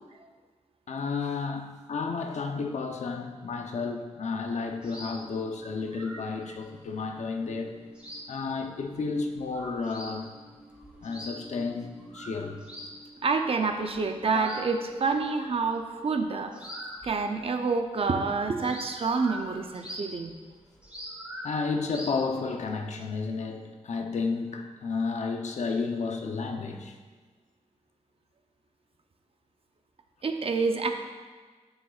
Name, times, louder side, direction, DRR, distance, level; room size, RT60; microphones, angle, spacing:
voice 1, 0.9-7.8 8.3-10.3 11.0-12.6 21.4-27.0, left 4 dB, 75° left, 0.7 m, -32 dB
sound 1, 4.4-17.6 17.9-23.0, equal, 10° right, 2.2 m, -45 dB
voice 2, 13.2-16.6 17.0-20.3 30.2-30.9, right 4 dB, 50° right, 0.6 m, -28 dB
11.5 x 6.3 x 2.4 m
wide cardioid pair, 110°, 12 cm